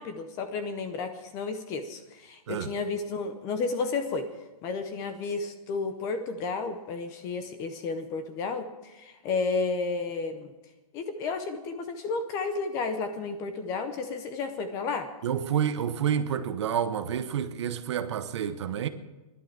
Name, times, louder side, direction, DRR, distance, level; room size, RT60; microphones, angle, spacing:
voice 1, 0.0-4.3 4.6-10.5 10.9-15.1, left 4 dB, 15° left, 0.7 m, -32 dB
voice 2, 15.2-18.9, right 9 dB, 50° right, 1.0 m, -29 dB
15.5 x 11.5 x 7.3 m
hypercardioid pair, 170°, 19 cm